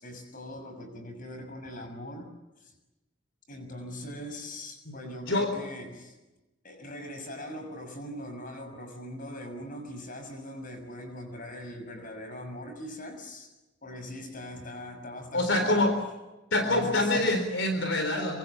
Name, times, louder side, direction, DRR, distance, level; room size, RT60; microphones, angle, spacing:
voice 1, 0.0-2.3 2.6-2.7 3.5-6.1 6.6-13.5 13.8-15.9 16.6-17.5, left 1 dB, 45° left, 6 dB, 6.5 m, -41 dB
voice 2, 15.3-15.9 16.5-18.4, left 2 dB, 75° left, 6 dB, 4.0 m, -25 dB
26.5 x 25.0 x 7.3 m, 1.0 s
head